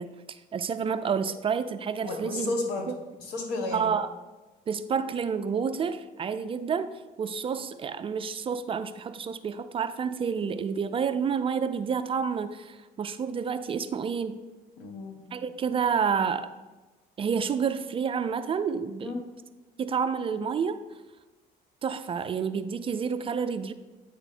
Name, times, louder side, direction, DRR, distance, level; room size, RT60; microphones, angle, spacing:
voice 1, 0.0-2.5 3.7-4.1 4.7-6.9 7.2-14.4 15.3-16.5 17.2-19.2 19.8-20.8 21.8-23.7, right 6 dB, 30° right, 10 dB, 0.4 m, -29 dB
voice 2, 2.0-2.9 3.2-3.9 14.8-15.4 19.0-19.2, left 2 dB, 80° left, 2 dB, 1.3 m, -32 dB
8.7 x 3.4 x 4.2 m, 1.2 s
cardioid pair, 110°, 17 cm